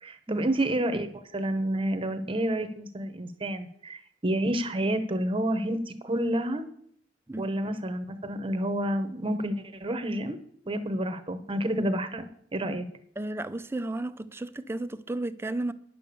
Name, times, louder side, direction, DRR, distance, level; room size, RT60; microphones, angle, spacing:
voice 1, 0.0-6.6 7.4-10.4 10.7-12.9, right 1 dB, 30° right, 0.9 m, -29 dB
voice 2, 13.2-15.7, right 2 dB, 15° right, 0.4 m, -33 dB
10.5 x 6.9 x 6.9 m
head